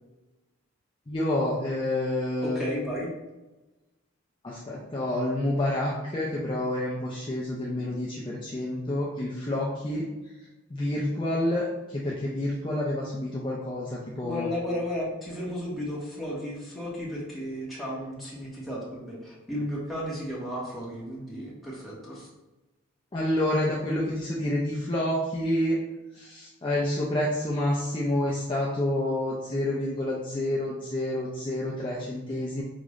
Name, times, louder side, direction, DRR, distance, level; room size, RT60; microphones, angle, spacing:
voice 1, 1.1-2.6 4.4-10.1 10.4-14.5 23.1-25.8 26.1-32.6, left 1 dB, 25° left, -5 dB, 0.5 m, -28 dB
voice 2, 2.4-3.1 14.2-22.3, equal, ahead, -7 dB, 1.1 m, -34 dB
4.9 x 2.5 x 3.1 m, 1.1 s
head